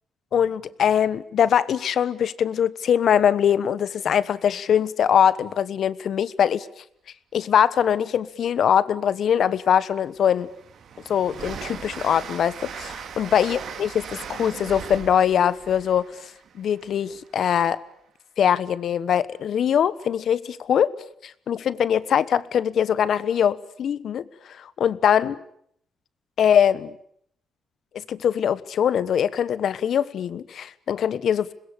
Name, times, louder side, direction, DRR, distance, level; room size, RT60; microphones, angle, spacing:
voice 1, 0.3-6.7 7.3-10.5 11.0-16.3 16.5-17.8 18.4-20.9 21.2-25.4 26.4-27.0 27.9-31.5, left 8 dB, 65° left, 17 dB, 1.2 m, -22 dB
Train, 9.2-9.3 9.8-17.5, right 7 dB, 65° right, 2.4 m, -39 dB
26.5 x 21.0 x 8.7 m, 0.67 s
cardioid pair, 95°, 0 cm